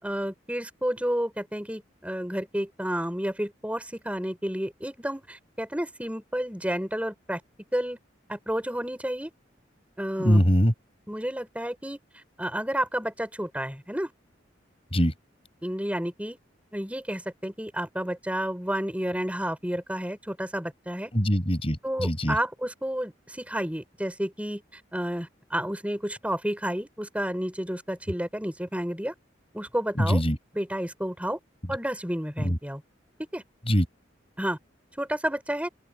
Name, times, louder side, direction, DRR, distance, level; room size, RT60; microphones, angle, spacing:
voice 1, 0.0-7.4 7.7-8.0 8.3-9.3 10.0-10.4 11.1-14.1 15.6-16.4 16.7-21.1 21.8-29.1 29.5-30.2 30.5-31.4 31.7-32.8 33.3-33.4 34.4-34.6 35.0-35.7, equal, 5° right, 5.1 m, -31 dB
voice 2, 10.2-10.7 14.9-15.1 21.1-22.4 30.0-30.4 32.4-32.6 33.7-33.9, equal, 30° left, 6.4 m, -22 dB
open air
head